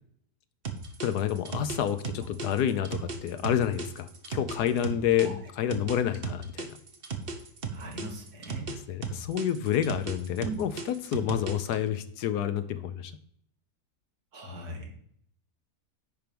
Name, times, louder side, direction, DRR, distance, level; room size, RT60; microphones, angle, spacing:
sound 1, 0.6-5.3 5.7-8.8 9.0-11.7, right 6 dB, 40° right, 1.1 m, -35 dB
voice 1, 1.0-6.8 8.9-13.1, left 10 dB, 75° left, 12 dB, 1.2 m, -29 dB
voice 2, 5.1-5.4 7.7-8.7 10.4-10.6 14.3-15.1, right 1 dB, 65° right, 2 dB, 2.1 m, -39 dB
10.5 x 4.5 x 5.2 m, 0.68 s
omnidirectional pair, 1.8 m